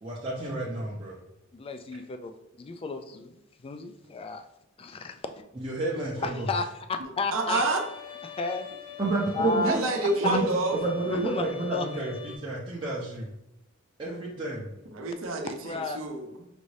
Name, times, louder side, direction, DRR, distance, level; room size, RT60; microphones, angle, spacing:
voice 1, 0.0-1.2 5.6-6.4 9.0-9.9 10.2-10.5 10.7-13.3 14.0-14.7, right 2 dB, 25° right, -6 dB, 0.6 m, -30 dB
voice 2, 1.5-2.3 2.6-3.4 3.6-4.4 4.8-5.3 6.2-7.6 8.2-8.7 9.0-10.4 11.1-11.4 11.7-12.0 15.6-16.0, left 3 dB, 25° left, 8 dB, 0.3 m, -33 dB
Bowed string instrument, 7.3-12.4, left 9 dB, 85° left, 0.5 m, -44 dB
voice 3, 7.3-7.8 9.6-10.8 14.9-16.5, right 2 dB, 70° right, 3 dB, 0.7 m, -28 dB
5.1 x 2.7 x 3.2 m, 0.85 s
head